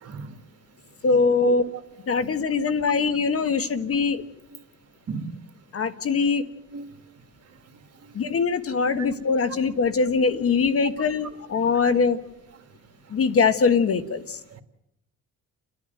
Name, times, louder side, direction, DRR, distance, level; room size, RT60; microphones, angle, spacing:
voice 1, 0.0-0.3 1.4-1.6 5.1-5.3 6.7-7.0 11.8-11.9 14.5-14.6, right 7 dB, 55° right, 2.1 m, -33 dB
voice 2, 1.0-1.6 2.1-4.3 5.7-6.4 8.1-12.2 13.1-14.4, left 5 dB, 50° left, 1.4 m, -22 dB
29.5 x 10.5 x 9.2 m
cardioid pair, 90°, 30 cm